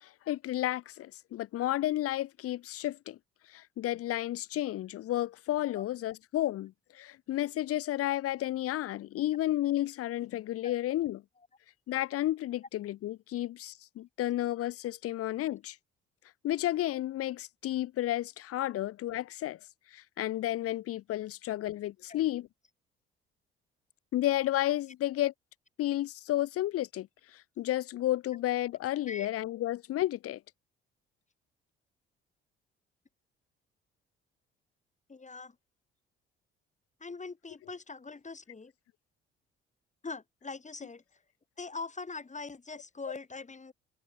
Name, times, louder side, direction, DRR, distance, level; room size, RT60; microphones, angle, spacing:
voice 1, 0.0-3.2 3.5-11.2 11.9-15.8 16.4-19.6 19.9-22.5 24.1-25.3 25.8-27.1 27.6-30.4, left 14 dB, 50° left, 1.3 m, -32 dB
voice 2, 35.1-35.5 37.0-38.7 40.0-41.0 41.6-43.7, left 4 dB, 25° left, 6.4 m, -42 dB
figure-of-eight pair, 50°, 30 cm